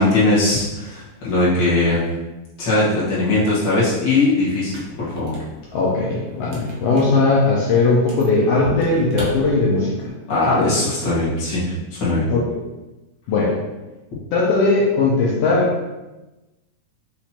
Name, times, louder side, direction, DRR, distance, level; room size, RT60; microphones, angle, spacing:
voice 1, 0.0-2.0 2.6-4.7 5.0-5.3 10.3-12.3, left 2 dB, 45° left, -8 dB, 1.6 m, -19 dB
sound 1, 4.6-10.1, right 1 dB, 70° right, 1.2 m, -35 dB
voice 2, 5.7-10.1 10.5-10.7 11.1-11.2 12.3-12.4 13.3-13.5 14.3-15.7, left 3 dB, 85° left, -4 dB, 1.4 m, -18 dB
5.8 x 3.1 x 2.9 m, 1.1 s
omnidirectional pair, 3.7 m